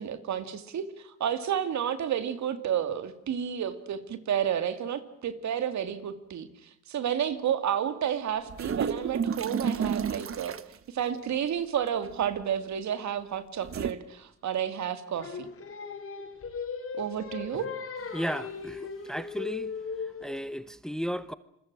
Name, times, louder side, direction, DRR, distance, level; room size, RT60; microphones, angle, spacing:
voice 1, 0.0-10.6 10.9-15.5 16.9-17.7, right 9 dB, 65° right, 2.6 m, -31 dB
sound 1, 8.5-10.8 12.0-12.4 13.6-13.9, right 6 dB, 45° right, 1.4 m, -31 dB
Singing, 15.2-20.4, left 5 dB, 50° left, 6.6 m, -38 dB
voice 2, 18.1-19.7 20.2-21.3, equal, ahead, 1.1 m, -34 dB
28.0 x 22.5 x 6.2 m
cardioid pair, 90°, 30 cm